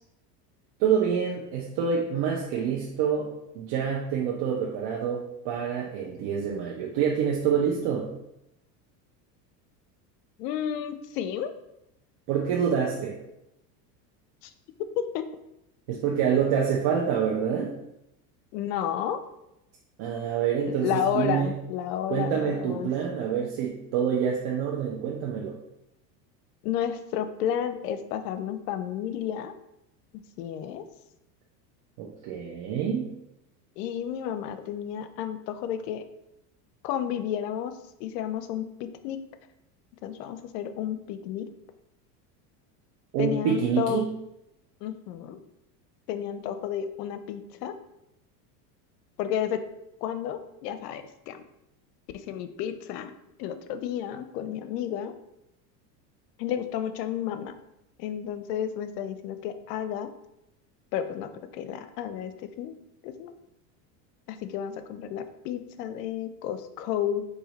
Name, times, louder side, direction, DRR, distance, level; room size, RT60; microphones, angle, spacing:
voice 1, 0.8-3.3 3.5-8.1 12.3-13.2 15.9-17.7 20.0-21.5 22.1-25.5 32.0-33.1 43.1-44.1, right 7 dB, 50° right, -2 dB, 0.8 m, -27 dB
voice 2, 10.4-11.5 14.4-14.5 15.0-15.3 15.9-16.0 18.5-19.2 20.7-22.9 26.6-29.5 30.4-30.9 33.8-36.0 36.8-39.2 40.0-41.5 43.2-44.0 44.8-45.4 46.1-47.7 49.2-49.6 50.0-51.4 52.1-53.1 53.4-55.1 56.4-57.6 58.0-60.1 60.9-62.7 63.0-63.3 64.3-67.3, left 9 dB, 75° left, 10 dB, 0.6 m, -31 dB
4.8 x 2.7 x 4.0 m, 0.85 s
supercardioid pair, 100°, 49 cm